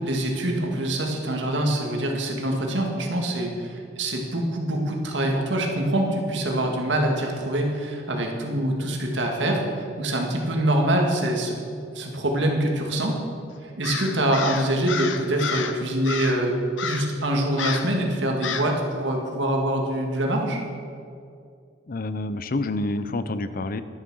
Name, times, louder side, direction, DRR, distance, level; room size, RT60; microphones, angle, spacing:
voice 1, 0.0-11.6 11.9-13.2 13.6-16.5 16.8-20.6, right 1 dB, 70° right, 1 dB, 2.1 m, -25 dB
Crow, 13.8-15.8 16.0-16.4 16.8-17.2 17.6-17.9 18.4-18.7, left 6 dB, 85° left, 0.9 m, -30 dB
voice 2, 21.9-23.8, left 2 dB, 50° left, 13 dB, 0.6 m, -28 dB
11.5 x 10.5 x 6.3 m, 2.4 s
head